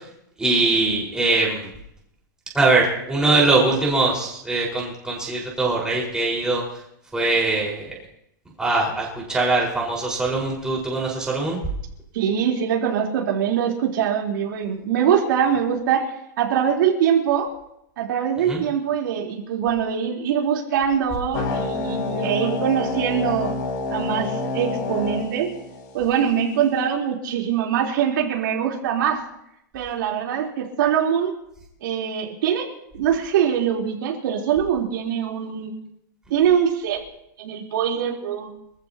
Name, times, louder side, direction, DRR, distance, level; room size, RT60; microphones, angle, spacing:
voice 1, 0.4-1.7 2.5-6.6 7.1-8.0 8.6-11.6 18.5-18.6, right 3 dB, 5° right, -3 dB, 5.3 m, -22 dB
voice 2, 12.1-17.5 18.0-23.5 23.9-25.5 25.9-29.2 29.7-31.3 31.8-32.7 32.9-35.7 36.3-37.0 37.4-38.5, right 8 dB, 70° right, -1 dB, 4.2 m, -23 dB
sound 1, 21.3-26.3, left 3 dB, 60° left, 5.6 m, -28 dB
26.0 x 15.5 x 3.1 m, 0.77 s
supercardioid pair, 160°, 11 cm